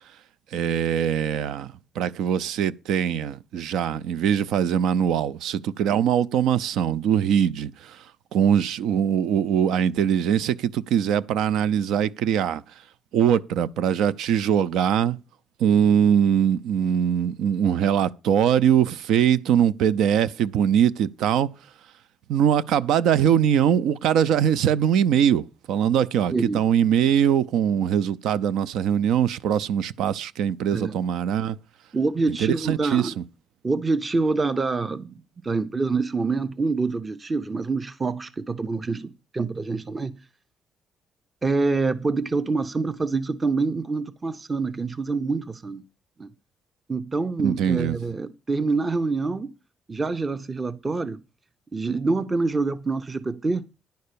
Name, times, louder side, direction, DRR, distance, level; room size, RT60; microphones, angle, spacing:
voice 1, 0.5-8.0 8.3-12.6 13.1-15.2 15.6-21.5 22.3-31.6 32.4-33.1 47.4-48.0, right 9 dB, 85° right, 0.5 m, -22 dB
voice 2, 26.3-26.7 30.7-31.0 31.9-33.2 33.6-35.2 35.4-40.2 41.4-45.8 46.2-46.3 46.9-49.5 49.9-51.2 51.7-53.6, right 3 dB, 30° right, 0.6 m, -26 dB
10.5 x 5.4 x 6.8 m
cardioid pair, 90°, 0 cm